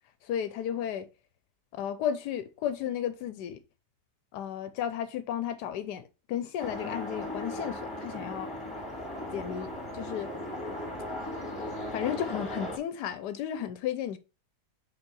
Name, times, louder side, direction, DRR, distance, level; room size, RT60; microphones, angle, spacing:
voice 1, 0.2-1.1 1.7-3.6 4.3-8.5 9.3-10.3 11.9-14.2, left 9 dB, 85° left, 1.2 m, -33 dB
sound 1, 6.6-12.8, left 1 dB, 15° left, 2.2 m, -37 dB
5.3 x 4.7 x 5.3 m
omnidirectional pair, 1.8 m